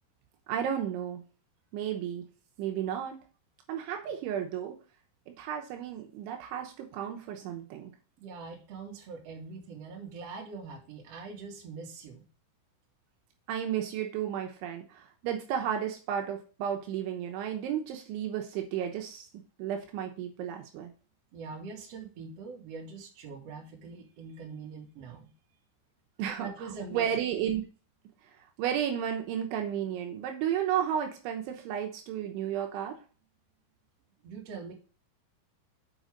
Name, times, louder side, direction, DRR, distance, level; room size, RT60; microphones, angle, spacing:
voice 1, 0.5-1.2 1.7-2.3 2.6-3.2 3.7-4.8 5.3-7.9 13.5-19.3 19.6-20.9 26.2-26.5 26.9-27.6 28.6-33.0, right 9 dB, 75° right, 3 dB, 3.2 m, -33 dB
voice 2, 8.2-12.2 21.3-25.3 26.4-27.0 34.2-34.7, right 4 dB, 45° right, -1 dB, 2.3 m, -43 dB
7.8 x 5.1 x 5.1 m, 0.36 s
omnidirectional pair, 5.7 m